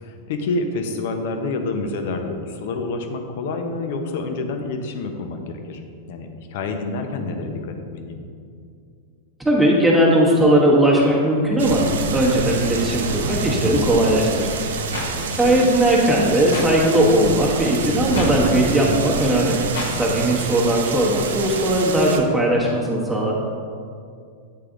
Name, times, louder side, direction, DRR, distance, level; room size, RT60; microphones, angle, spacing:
voice 1, 0.0-5.8 6.1-8.2 15.4-15.7, left 3 dB, 65° left, 5 dB, 0.7 m, -28 dB
voice 2, 9.4-14.5 14.9-19.6 19.9-23.3, right 1 dB, 5° right, -4 dB, 1.0 m, -18 dB
sound 1, 11.6-22.2, right 4 dB, 85° right, 0.5 m, -27 dB
sound 2, 14.9-15.1 16.5-16.7 18.1-18.3 19.7-19.9, left 3 dB, 85° left, 1.1 m, -28 dB
8.5 x 3.3 x 3.7 m, 2.3 s
hypercardioid pair, 125°, 0 cm